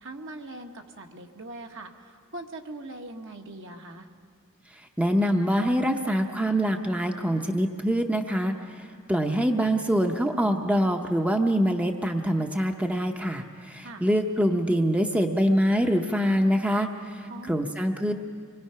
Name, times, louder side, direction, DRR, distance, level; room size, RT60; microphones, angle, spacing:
voice 1, 0.0-4.1 13.8-14.0 17.3-17.7, right 2 dB, 60° right, 3 dB, 1.4 m, -41 dB
voice 2, 4.7-18.1, equal, 5° right, 4 dB, 0.7 m, -25 dB
25.5 x 21.5 x 5.7 m, 2.1 s
head